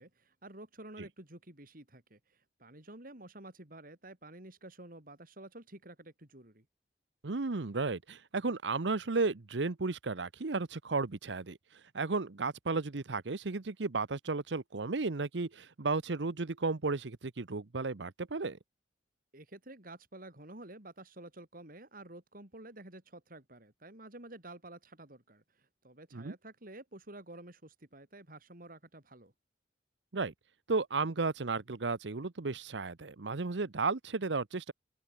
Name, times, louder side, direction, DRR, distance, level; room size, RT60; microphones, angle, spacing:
voice 1, 0.0-6.6 19.3-29.3, right 1 dB, 50° right, 4.9 m, -51 dB
voice 2, 7.2-11.6 11.9-18.6 26.1-26.3 30.1-30.3 30.7-34.7, right 3 dB, 85° right, 0.9 m, -34 dB
head